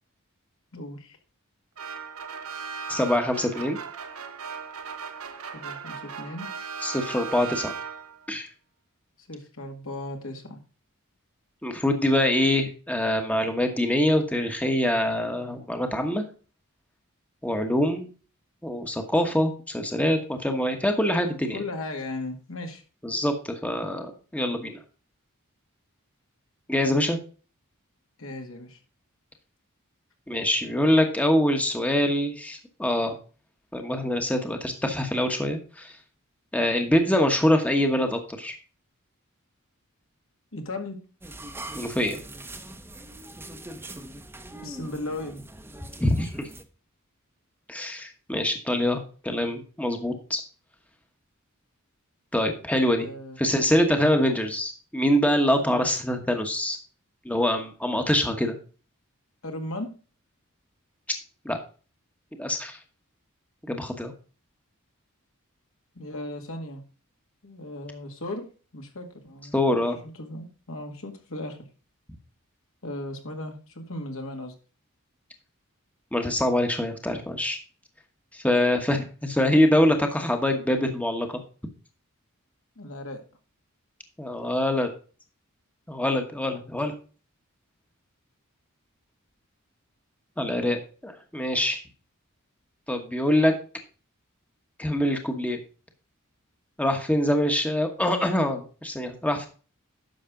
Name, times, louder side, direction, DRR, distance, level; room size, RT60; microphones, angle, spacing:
voice 1, 0.7-1.2 5.5-6.5 9.2-10.6 21.5-22.8 28.2-28.8 40.5-41.0 44.6-45.4 52.9-53.4 55.6-55.8 59.4-59.9 65.9-66.8 67.4-71.7 72.8-74.5 82.8-83.2, left 2 dB, 70° left, 3 dB, 2.1 m, -37 dB
sound 1, 1.8-8.3, right 6 dB, 80° right, 1.2 m, -37 dB
voice 2, 2.9-3.8 6.8-7.7 8.3-8.5 11.6-16.2 17.4-18.1 18.6-21.6 23.0-24.8 26.7-27.2 30.3-33.2 33.7-35.9 36.5-38.6 41.7-42.2 46.0-46.3 47.7-50.4 52.3-53.1 53.4-56.8 57.2-58.6 61.4-61.6 62.4-62.8 63.7-64.1 69.5-70.0 76.1-77.6 78.3-81.4 84.2-84.9 85.9-86.9 90.4-91.8 92.9-93.5 94.8-95.6 96.8-99.5, left 1 dB, 5° left, 4 dB, 1.2 m, -24 dB
sound 2, 41.2-46.6, right 1 dB, 10° right, 0.9 m, -42 dB
10.5 x 6.5 x 3.8 m, 0.36 s
head